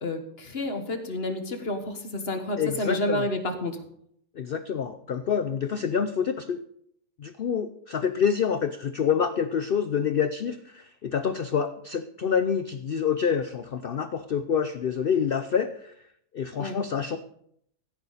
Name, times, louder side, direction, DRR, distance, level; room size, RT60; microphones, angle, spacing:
voice 1, 0.0-3.8 16.6-16.8, left 1 dB, 40° left, 7 dB, 1.5 m, -30 dB
voice 2, 2.6-3.2 4.4-6.6 7.2-15.9 16.3-17.2, left 7 dB, 75° left, 11 dB, 0.5 m, -27 dB
15.5 x 9.4 x 4.1 m, 0.70 s
omnidirectional pair, 1.7 m